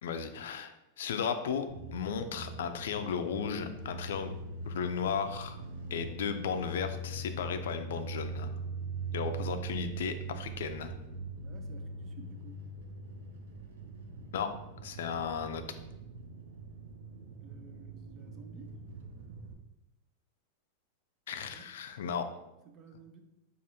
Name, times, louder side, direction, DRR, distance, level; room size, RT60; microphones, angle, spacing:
voice 1, 0.0-4.3 4.6-5.6 5.9-8.5 9.1-10.9 14.3-14.5 14.8-15.6 21.3-22.3, left 6 dB, 80° left, 8 dB, 0.4 m, -35 dB
sound 1, 1.7-19.5, right 3 dB, 80° right, 0.5 m, -42 dB
voice 2, 11.4-12.6 17.4-18.7 21.5-21.7 22.7-23.2, right 5 dB, 25° right, 6 dB, 0.3 m, -54 dB
4.8 x 2.5 x 2.7 m, 0.91 s
supercardioid pair, 170°, 0 cm